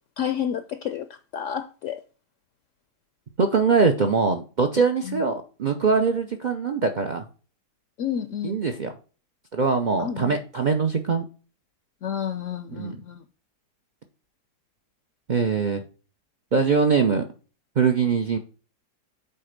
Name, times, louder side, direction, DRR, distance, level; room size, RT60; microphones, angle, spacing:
voice 1, 0.2-1.1 1.3-2.0 5.0-5.2 8.0-8.6 10.0-10.4 12.0-13.2, left 9 dB, 70° left, 0.7 m, -30 dB
voice 2, 3.4-7.2 8.4-8.9 9.5-11.2 12.7-13.0 15.3-15.8 16.5-17.2 17.8-18.4, right 5 dB, 70° right, 0.4 m, -22 dB
8.4 x 3.3 x 5.1 m
omnidirectional pair, 1.7 m